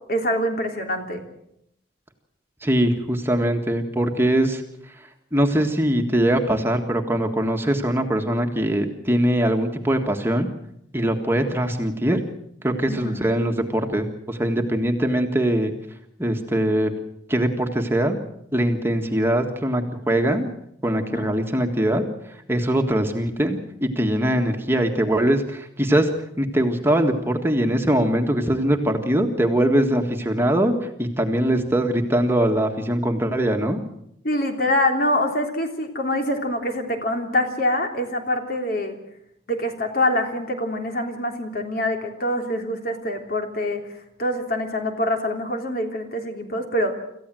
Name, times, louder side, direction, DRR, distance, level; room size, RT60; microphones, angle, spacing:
voice 1, 0.1-1.2 12.9-13.2 21.1-21.3 34.2-39.0 39.5-43.8 44.2-46.9, left 1 dB, 55° left, 4 dB, 3.3 m, -25 dB
voice 2, 2.6-4.6 5.3-10.5 10.9-12.2 12.6-15.7 16.2-16.9 17.3-18.2 18.5-20.5 20.8-22.0 22.5-26.1 26.4-33.8, right 1 dB, 15° right, 3 dB, 1.7 m, -22 dB
27.0 x 15.0 x 7.7 m, 0.77 s
head